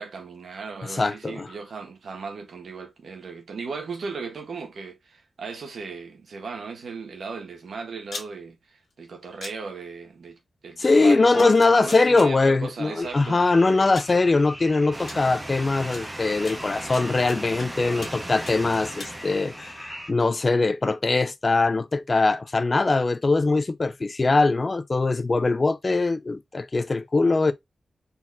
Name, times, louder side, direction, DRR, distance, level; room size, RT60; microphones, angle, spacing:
voice 1, 0.0-8.6 9.0-13.4, right 4 dB, 80° right, 1.4 m, -36 dB
voice 2, 0.9-1.5 10.8-27.5, left 3 dB, 35° left, 0.5 m, -22 dB
sound 1, 8.0-8.3 9.4-9.5 10.8-10.9 11.4-12.3 13.3-13.4 14.0-14.2 15.1-15.2 15.9-16.0 16.5-17.7 18.0-18.2 18.5-19.1, left 3 dB, 75° left, 1.9 m, -39 dB
sound 2, 13.0-20.1, equal, ahead, 1.0 m, -42 dB
sound 3, 14.9-19.8, right 2 dB, 25° right, 1.1 m, -37 dB
4.1 x 4.0 x 2.6 m
wide cardioid pair, 90°, 0 cm